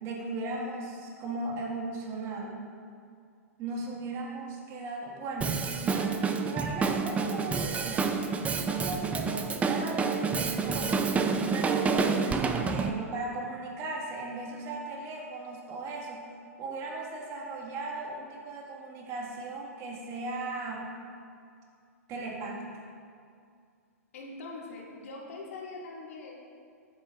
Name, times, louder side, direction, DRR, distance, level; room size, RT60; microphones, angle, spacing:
voice 1, 0.0-2.6 3.6-11.3 11.5-16.3 16.6-20.9 22.1-22.9, right 2 dB, 35° right, -2 dB, 1.8 m, -37 dB
Drum kit, 5.4-12.9, right 5 dB, 15° right, 0.5 m, -28 dB
voice 2, 24.1-26.4, left 3 dB, 65° left, -3 dB, 2.2 m, -42 dB
13.5 x 8.5 x 2.5 m, 2.3 s
hypercardioid pair, 110°, 8 cm